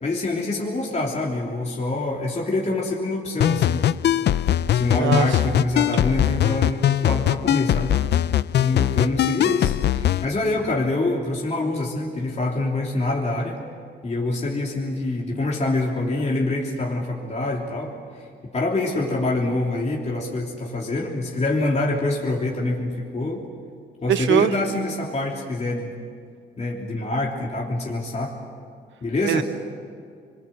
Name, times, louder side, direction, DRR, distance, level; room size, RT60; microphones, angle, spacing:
voice 1, 0.0-4.1 4.7-8.0 8.5-13.6 14.0-18.3 18.5-23.4 24.0-25.9 26.6-28.3 29.0-29.4, left 2 dB, 35° left, -2 dB, 3.3 m, -25 dB
sound 1, 3.4-10.2, left 11 dB, 60° left, 0.6 m, -21 dB
voice 2, 5.0-5.6 24.1-24.5 29.2-29.4, right 10 dB, 70° right, 12 dB, 1.1 m, -22 dB
26.5 x 22.5 x 7.7 m, 2.2 s
cardioid pair, 90°, 20 cm